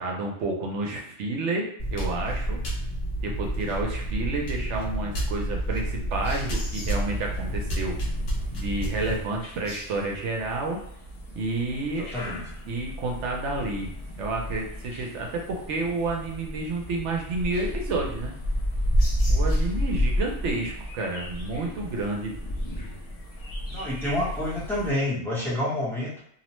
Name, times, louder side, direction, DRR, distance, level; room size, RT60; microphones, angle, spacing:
voice 1, 0.0-2.6 3.2-7.9 8.5-10.8 11.3-12.1 12.7-18.3 19.3-22.3, right 2 dB, 70° right, 0 dB, 0.9 m, -30 dB
sound 1, 1.8-9.2, right 1 dB, 55° left, 0.9 m, -30 dB
sound 2, 6.1-24.9, equal, 70° left, 0.3 m, -32 dB
voice 2, 12.0-12.4 23.7-26.2, left 1 dB, ahead, -7 dB, 0.7 m, -28 dB
2.7 x 2.1 x 3.0 m, 0.70 s
omnidirectional pair, 1.3 m